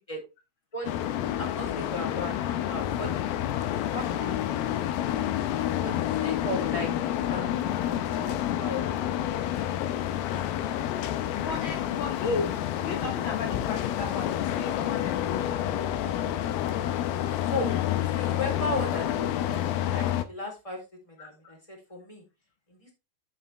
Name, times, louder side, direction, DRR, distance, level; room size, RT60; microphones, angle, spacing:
sound 1, 0.8-20.2, left 11 dB, 85° left, 2.7 m, -29 dB
voice 1, 1.4-2.3 2.6-3.2 3.9-4.7 5.8-6.9 7.2-8.8 17.5-17.7 18.0-20.8 21.2-22.2, left 1 dB, 10° left, 1 dB, 3.7 m, -36 dB
voice 2, 11.3-15.7 21.2-21.3, left 4 dB, 70° left, 4 dB, 1.1 m, -35 dB
11.0 x 7.1 x 3.4 m, 0.27 s
omnidirectional pair, 4.3 m